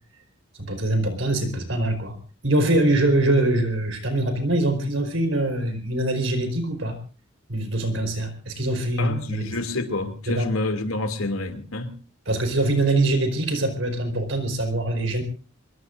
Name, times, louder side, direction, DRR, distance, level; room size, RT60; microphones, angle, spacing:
voice 1, 0.6-2.2 2.4-7.0 7.5-9.7 10.3-10.5 12.3-15.2, right 1 dB, 65° right, 4.5 m, -23 dB
voice 2, 9.0-11.9, left 2 dB, 90° left, 2.6 m, -28 dB
25.5 x 22.0 x 2.6 m
head